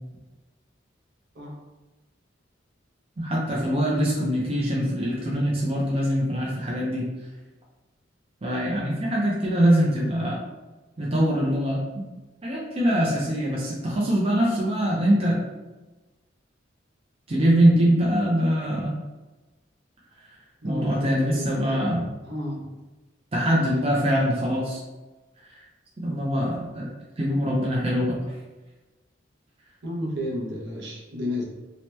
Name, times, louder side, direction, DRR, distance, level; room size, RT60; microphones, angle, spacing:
voice 1, 3.2-7.0 8.4-10.4 11.0-12.0 12.4-15.4 17.3-19.0 20.6-22.0 23.3-24.8 25.5-25.6 26.0-26.9 27.2-28.3, equal, 30° right, -4 dB, 0.5 m, -23 dB
voice 2, 20.6-21.9 22.3-22.6 29.8-31.4, left 1 dB, 65° right, -3 dB, 0.8 m, -32 dB
2.8 x 2.1 x 3.1 m, 1.2 s
head